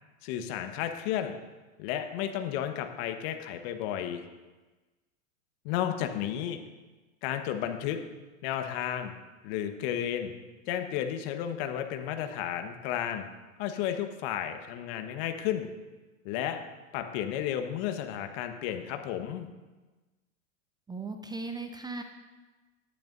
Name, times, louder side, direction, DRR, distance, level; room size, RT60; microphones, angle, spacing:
voice 1, 0.2-1.3 1.8-4.3 5.6-6.6 7.2-8.0 8.4-9.1 9.4-10.3 10.7-13.3 13.6-15.7 16.2-16.6 16.9-19.5, left 10 dB, 45° left, 6 dB, 1.3 m, -32 dB
voice 2, 20.9-22.0, right 3 dB, 10° right, 6 dB, 0.6 m, -37 dB
18.0 x 10.5 x 2.7 m, 1.2 s
hypercardioid pair, 95°, 42 cm